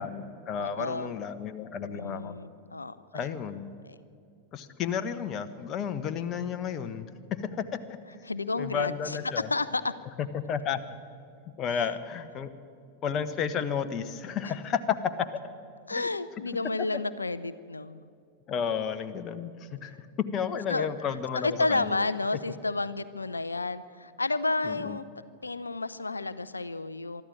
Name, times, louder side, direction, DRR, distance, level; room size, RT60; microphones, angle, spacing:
voice 1, 0.0-2.4 3.1-3.6 4.5-7.1 7.4-7.8 8.6-9.5 10.0-10.8 11.6-12.5 13.0-15.0 15.9-16.4 16.8-17.0 18.5-20.1 20.3-22.4 24.6-25.0, left 7 dB, 30° left, 9 dB, 1.2 m, -32 dB
voice 2, 0.6-1.1 1.9-3.3 3.8-4.0 8.2-9.2 9.5-9.9 15.9-18.1 20.7-25.1 25.4-27.2, left 3 dB, 80° left, 15 dB, 0.6 m, -31 dB
23.5 x 13.0 x 8.8 m, 2.3 s
figure-of-eight pair, 90°, 0 cm